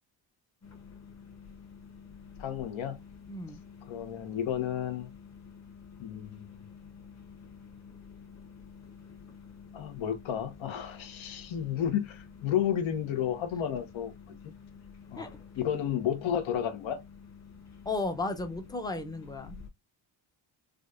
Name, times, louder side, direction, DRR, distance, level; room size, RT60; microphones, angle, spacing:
sound 1, 0.6-19.7, left 6 dB, 35° left, 1.0 m, -50 dB
voice 1, 2.4-3.0 3.9-5.1 6.0-6.4 9.7-14.1 14.4-14.5 15.1-15.3 15.6-17.0, left 9 dB, 75° left, 1.0 m, -32 dB
voice 2, 3.3-3.6 15.2-15.3 17.9-19.6, left 3 dB, 10° left, 0.5 m, -34 dB
5.0 x 2.3 x 2.4 m
cardioid pair, 145°, 47 cm